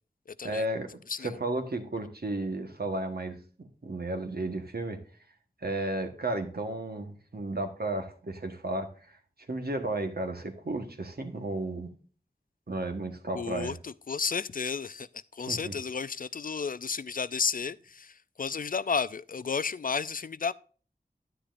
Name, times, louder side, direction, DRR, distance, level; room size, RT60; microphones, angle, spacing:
voice 1, 0.4-5.0 5.6-9.2 9.5-11.9 12.7-13.7 15.5-15.7, right 2 dB, 65° right, 1.3 m, -33 dB
voice 2, 13.3-15.1 15.3-20.5, left 5 dB, 55° left, 0.4 m, -32 dB
9.9 x 9.9 x 2.5 m
wide cardioid pair, 60°, 17 cm